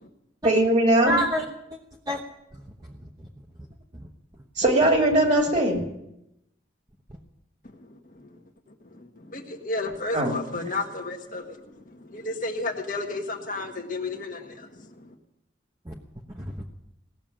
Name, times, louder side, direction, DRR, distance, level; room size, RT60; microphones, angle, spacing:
voice 1, 0.4-1.1 4.6-5.8 10.1-10.4, right 1 dB, 40° right, 1 dB, 2.8 m, -20 dB
voice 2, 1.1-1.4 2.1-2.2 2.8-3.3 3.9-4.1 15.8-16.0 16.3-16.6, equal, 20° right, 0 dB, 1.1 m, -28 dB
voice 3, 7.8-8.3 8.9-15.1, left 2 dB, 45° left, 3 dB, 1.6 m, -33 dB
18.5 x 7.1 x 8.9 m, 0.86 s
head